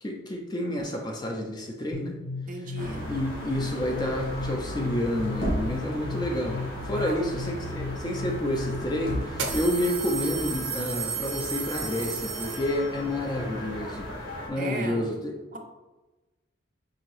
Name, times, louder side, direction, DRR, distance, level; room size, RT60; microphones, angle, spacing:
voice 1, 0.0-2.2 3.1-14.1 14.5-15.6, left 1 dB, 20° left, 2 dB, 0.4 m, -29 dB
sound 1, 1.9-9.5, left 3 dB, 70° left, 0.7 m, -36 dB
voice 2, 2.5-3.1 6.9-7.4 14.5-15.1 15.5-15.6, right 2 dB, 45° right, 4 dB, 0.5 m, -37 dB
sound 2, 2.8-14.5, equal, 90° left, 1.3 m, -36 dB
sound 3, 8.2-8.3 9.3-13.1, right 6 dB, 90° right, 0.6 m, -34 dB
5.1 x 2.8 x 3.0 m, 1.1 s
head